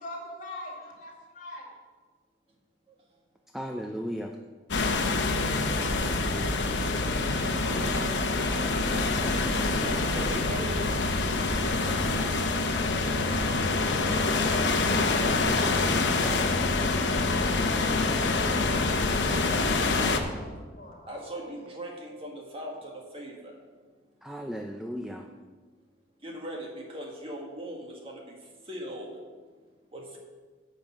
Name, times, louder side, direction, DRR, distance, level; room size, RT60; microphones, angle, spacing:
voice 1, 0.0-1.7 20.3-21.5, left 1 dB, 45° left, -1 dB, 2.3 m, -42 dB
voice 2, 3.5-4.3 20.0-20.4 24.2-25.3, equal, ahead, 2 dB, 0.5 m, -36 dB
sound 1, 4.7-20.2, left 3 dB, 75° left, 0.9 m, -26 dB
voice 3, 5.7-6.0 7.3-8.3 9.5-10.8 11.5-12.4 12.6-13.0 14.9-17.3 21.1-23.5 26.2-28.4 28.7-29.1 29.9-30.2, equal, 30° right, 0 dB, 1.7 m, -40 dB
10.0 x 5.4 x 7.2 m, 1.4 s
head